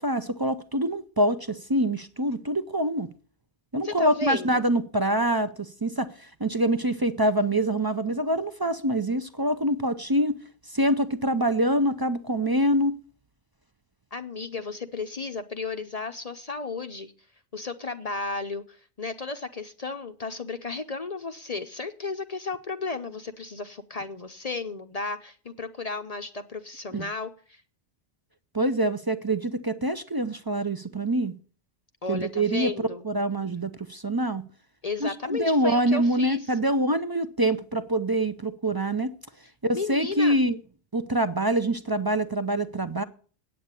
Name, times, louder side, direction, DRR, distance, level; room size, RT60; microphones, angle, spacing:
voice 1, 0.0-3.1 3.7-10.4 10.7-12.9 26.9-27.1 28.5-31.3 32.1-32.7 33.0-34.4 35.0-39.1 39.6-40.6 40.9-43.0, right 1 dB, 30° right, 0.4 m, -25 dB
voice 2, 3.8-4.6 14.1-17.1 17.5-27.6 32.0-33.0 34.8-36.4 39.7-40.4, left 3 dB, 40° left, 0.7 m, -34 dB
8.6 x 8.6 x 8.1 m
omnidirectional pair, 1.2 m